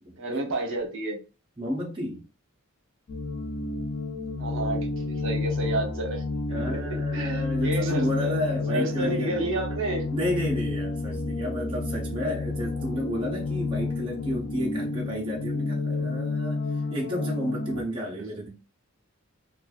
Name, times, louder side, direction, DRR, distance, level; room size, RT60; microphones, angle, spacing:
voice 1, 0.2-1.2 4.4-6.2 6.5-8.3 8.7-10.1, right 2 dB, 65° right, 0.8 m, -30 dB
voice 2, 1.6-2.2 6.5-9.5 10.1-18.5, equal, 25° right, 0.5 m, -31 dB
sound 1, 3.1-17.8, left 3 dB, 50° left, 0.4 m, -30 dB
2.9 x 2.3 x 2.4 m
head